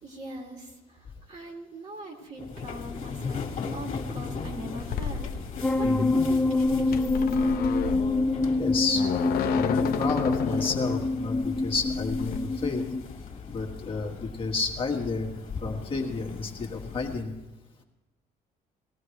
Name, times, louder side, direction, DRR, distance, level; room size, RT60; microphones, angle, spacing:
voice 1, 0.0-5.3 5.8-7.6, right 1 dB, 40° right, 1 dB, 2.6 m, -41 dB
sound 1, 2.4-17.2, left 5 dB, 45° left, 1.9 m, -39 dB
sound 2, 4.8-12.4, left 8 dB, 65° left, 0.8 m, -33 dB
sound 3, 5.6-13.0, left 2 dB, 5° left, 0.5 m, -26 dB
voice 2, 5.8-6.2 8.6-9.0 9.5-12.8 13.5-15.3 15.6-17.3, left 4 dB, 30° left, 0 dB, 1.6 m, -30 dB
19.5 x 14.5 x 3.2 m, 1.0 s
cardioid pair, 110°, 17 cm